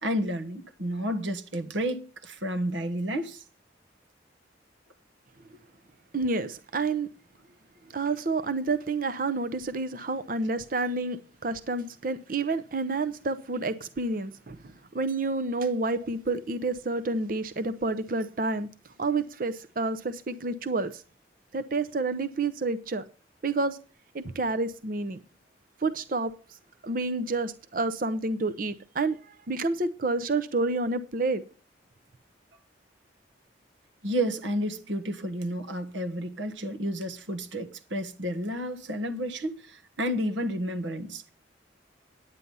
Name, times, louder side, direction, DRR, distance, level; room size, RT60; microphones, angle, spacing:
voice 1, 0.0-3.4 34.0-41.3, equal, 85° right, 1.3 m, -31 dB
voice 2, 6.1-7.1 7.9-18.7 19.0-21.0 21.5-23.0 23.4-23.8 24.1-25.2 25.8-26.3 26.8-31.4, right 3 dB, 45° right, 0.6 m, -29 dB
9.8 x 9.3 x 5.4 m
head